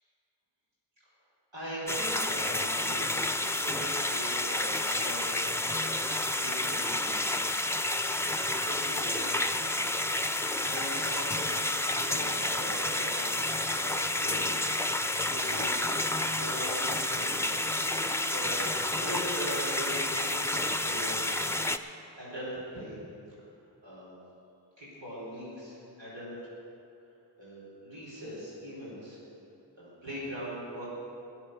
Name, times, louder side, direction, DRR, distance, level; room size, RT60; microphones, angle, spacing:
voice 1, 1.5-3.1 3.5-5.3 6.3-7.2 8.5-9.6 10.5-13.2 13.7-14.7 15.3-17.6 18.3-21.2 22.2-23.0 23.8-24.1 24.8-26.4 27.4-29.2 29.7-30.9, equal, 90° right, -10 dB, 4.2 m, -40 dB
sound 1, 1.9-21.8, left 1 dB, 5° left, 0.6 m, -30 dB
20.5 x 7.4 x 6.2 m, 2.7 s
cardioid pair, 45°, 44 cm